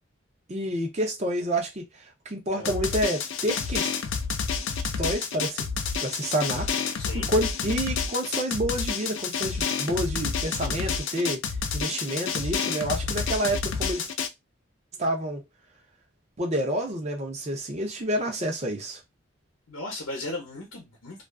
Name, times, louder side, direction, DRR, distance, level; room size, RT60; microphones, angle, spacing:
voice 1, 0.5-1.9 2.3-3.9 5.0-5.7 6.0-7.0 7.3-11.4 11.7-14.1 15.0-15.4 16.4-19.0, right 1 dB, 30° right, 0.6 m, -28 dB
Drum, 2.6-14.3, left 5 dB, 65° left, 0.4 m, -29 dB
voice 2, 7.0-7.3 19.7-21.2, left 2 dB, 80° left, 0.7 m, -36 dB
2.4 x 2.3 x 2.2 m
head